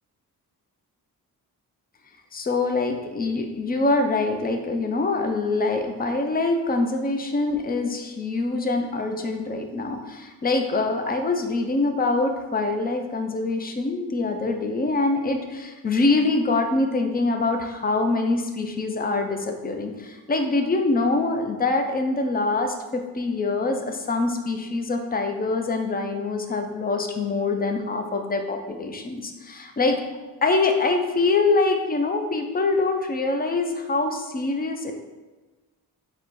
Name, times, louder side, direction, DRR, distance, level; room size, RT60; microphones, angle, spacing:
voice 1, 2.3-30.0 30.4-34.9, left 3 dB, 25° left, 5 dB, 0.4 m, -24 dB
4.1 x 2.2 x 4.5 m, 1.2 s
cardioid pair, 95°, 39 cm